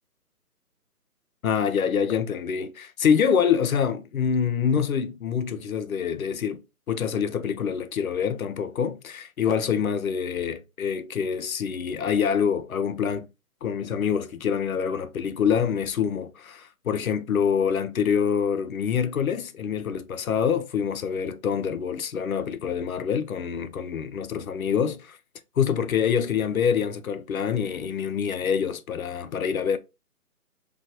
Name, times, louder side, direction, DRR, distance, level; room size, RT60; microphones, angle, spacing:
voice 1, 1.4-6.6 6.9-13.3 13.6-25.2 25.6-29.8, left 7 dB, 65° left, 0.5 m, -26 dB
3.2 x 2.3 x 2.7 m
hypercardioid pair, 175°, 46 cm